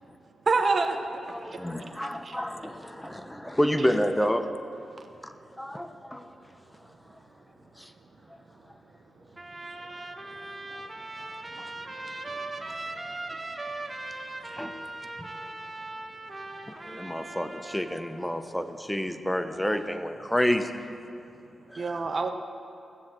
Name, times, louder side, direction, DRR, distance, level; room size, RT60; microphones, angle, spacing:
voice 1, 0.5-1.0 1.4-1.9 2.2-2.3 21.8-22.3, right 4 dB, 45° right, 5 dB, 1.0 m, -26 dB
voice 2, 1.3-4.5 5.2-6.3 7.8-7.9 10.7-10.9 11.2-11.3 11.6-11.7 14.4-14.8 15.2-15.3 16.7-20.7 21.7-22.0, equal, 5° left, 8 dB, 0.9 m, -30 dB
Trumpet, 9.4-18.1, right 2 dB, 20° right, 1.1 m, -39 dB
voice 3, 11.2-13.0 13.9-14.0 14.7-14.9 15.3-15.4 17.1-17.2, right 4 dB, 80° right, 5 dB, 1.1 m, -56 dB
16.0 x 7.5 x 7.5 m, 2.7 s
cardioid pair, 75°, 0 cm